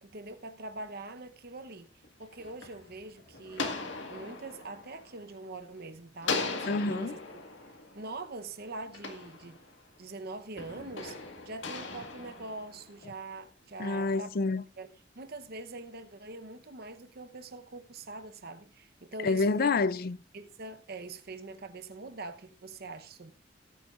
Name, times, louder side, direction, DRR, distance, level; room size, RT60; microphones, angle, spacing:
voice 1, 0.0-1.9 2.2-3.8 4.1-7.2 7.9-9.6 10.0-14.3 14.8-19.7 20.3-23.3, right 2 dB, 55° right, 0.9 m, -43 dB
sound 1, 2.0-5.8 6.2-10.0 10.6-13.2, left 4 dB, 85° left, 1.8 m, -39 dB
voice 2, 6.7-7.2 13.8-14.6 19.2-20.2, left 3 dB, 55° left, 0.5 m, -28 dB
18.0 x 9.2 x 2.5 m
head